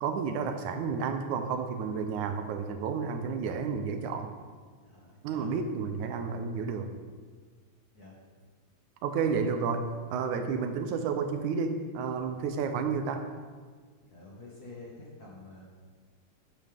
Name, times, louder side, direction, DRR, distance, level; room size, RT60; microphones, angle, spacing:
voice 1, 0.0-4.3 5.2-6.9 9.0-13.2, right 5 dB, 80° right, 7 dB, 2.2 m, -31 dB
voice 2, 4.8-5.5 7.9-8.2 9.2-9.4 14.1-15.6, left 3 dB, 40° left, -4 dB, 1.8 m, -48 dB
12.0 x 9.4 x 3.5 m, 1.5 s
omnidirectional pair, 3.4 m